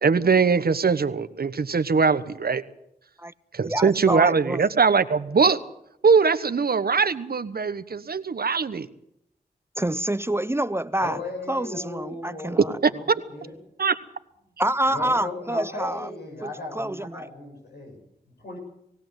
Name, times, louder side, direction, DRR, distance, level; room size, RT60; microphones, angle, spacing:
voice 1, 0.0-2.6 3.5-5.6 6.0-8.9 12.8-12.9 13.8-14.0, right 5 dB, 65° right, 1.1 m, -21 dB
voice 2, 3.6-4.7 9.8-11.2 11.5-12.7 14.6-16.1 16.4-17.3, right 1 dB, 15° right, 0.7 m, -27 dB
voice 3, 11.0-13.6 14.9-18.6, left 2 dB, 85° left, 7.4 m, -37 dB
20.0 x 16.5 x 8.1 m
cardioid pair, 45°, 17 cm